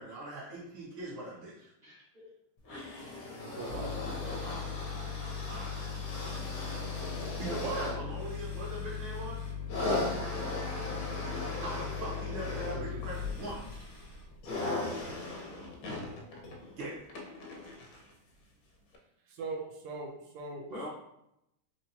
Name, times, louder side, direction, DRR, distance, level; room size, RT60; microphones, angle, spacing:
voice 1, 0.0-1.7 4.0-5.2 5.5-5.8 6.2-6.4 7.4-9.4 11.5-13.8 16.8-17.1, right 1 dB, 65° right, -7 dB, 2.1 m, -42 dB
voice 2, 1.8-2.3 2.7-2.8 10.5-10.7 14.6-14.8 20.7-20.9, equal, 30° right, -6 dB, 0.9 m, -44 dB
sound 1, 2.6-18.1 18.9-19.0, left 2 dB, 70° left, 0.8 m, -39 dB
voice 3, 3.6-4.0 7.4-7.9 11.0-11.1 12.5-13.0 19.4-20.9, right 4 dB, 85° right, 2 dB, 1.7 m, -39 dB
sound 2, 3.7-14.5, left 7 dB, 45° right, 1.3 m, -39 dB
4.5 x 2.8 x 2.7 m, 0.82 s
omnidirectional pair, 2.4 m